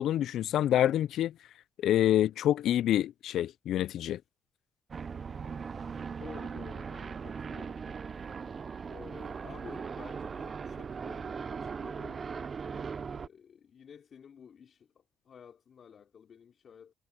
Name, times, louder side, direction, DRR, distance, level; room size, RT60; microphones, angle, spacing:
voice 1, 0.0-1.3 1.8-4.2, left 12 dB, 75° left, 0.3 m, -27 dB
sound 1, 4.9-13.3, right 6 dB, 40° right, 0.5 m, -39 dB
voice 2, 5.4-5.8 6.2-8.1 8.9-12.5 13.1-16.9, left 7 dB, 55° left, 4.4 m, -52 dB
cardioid pair, 90°, 0 cm